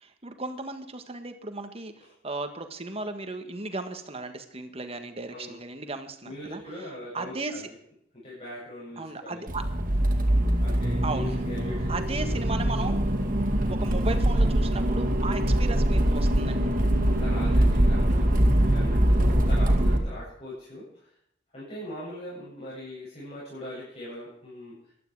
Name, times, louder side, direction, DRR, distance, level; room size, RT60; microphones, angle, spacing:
voice 1, 0.0-1.9 2.2-6.6 7.1-7.5 9.0-9.6 11.0-11.4 11.9-13.0 13.7-16.7, right 3 dB, 35° right, 7 dB, 1.7 m, -35 dB
voice 2, 6.2-7.7 8.1-9.5 10.6-12.2 12.7-12.9 17.0-21.1 21.5-24.9, left 1 dB, 35° left, -8 dB, 7.9 m, -41 dB
Accelerating revving vroom, 9.5-20.0, right 1 dB, 50° right, 2.4 m, -23 dB
15.0 x 12.0 x 4.9 m, 0.70 s
head